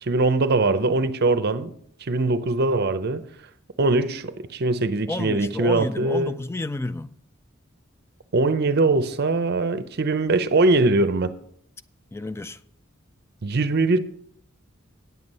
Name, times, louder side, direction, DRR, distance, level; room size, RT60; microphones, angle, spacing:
voice 1, 0.0-1.7 2.0-3.2 3.8-6.4 8.3-11.3 13.4-14.0, right 3 dB, 50° right, 0.6 m, -21 dB
voice 2, 5.1-7.2 12.1-12.6, left 2 dB, 10° left, 0.3 m, -30 dB
9.3 x 7.9 x 5.4 m
head